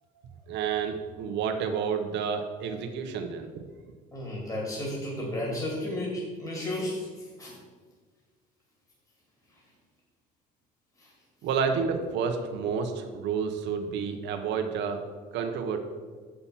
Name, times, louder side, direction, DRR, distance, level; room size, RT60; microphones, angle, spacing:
voice 1, 0.5-3.6 11.4-15.0 15.3-15.8, right 6 dB, 70° right, 6 dB, 1.0 m, -30 dB
voice 2, 4.1-7.5 9.5-9.6 11.0-11.1, left 1 dB, 15° left, -3 dB, 2.3 m, -33 dB
6.7 x 5.8 x 5.7 m, 1.5 s
cardioid pair, 95°, 19 cm